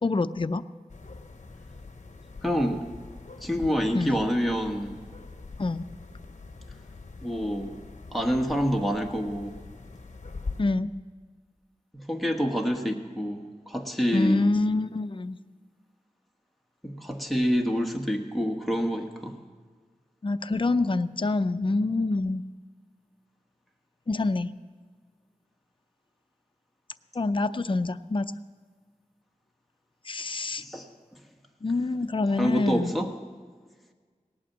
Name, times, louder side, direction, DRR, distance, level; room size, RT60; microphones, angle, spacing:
voice 1, 0.0-0.6 3.9-4.2 5.6-5.9 10.6-10.9 14.1-15.4 20.2-22.4 24.1-24.5 27.2-28.3 30.1-30.6 31.6-32.9, left 3 dB, 35° left, 11 dB, 0.5 m, -26 dB
sound 1, 0.9-10.6, left 3 dB, 60° left, 0.9 m, -43 dB
voice 2, 2.4-2.8 3.4-5.0 7.2-7.8 8.1-9.6 11.9-14.4 16.8-19.4 30.3-30.9 32.3-33.1, equal, ahead, 2 dB, 1.4 m, -27 dB
18.0 x 8.7 x 7.3 m, 1.5 s
wide cardioid pair, 60°, 14 cm